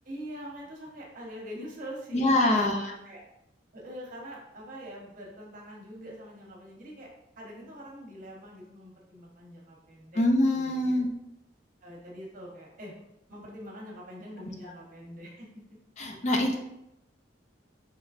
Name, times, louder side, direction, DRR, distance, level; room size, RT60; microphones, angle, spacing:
voice 1, 0.0-3.2 3.7-7.1 7.4-10.2 10.5-10.9 11.8-13.0 13.3-15.5 16.1-16.2, equal, 45° right, -2 dB, 0.9 m, -44 dB
voice 2, 2.1-2.9 10.2-11.1 16.0-16.6, left 1 dB, 40° left, 2 dB, 0.4 m, -24 dB
4.4 x 3.0 x 2.4 m, 0.82 s
head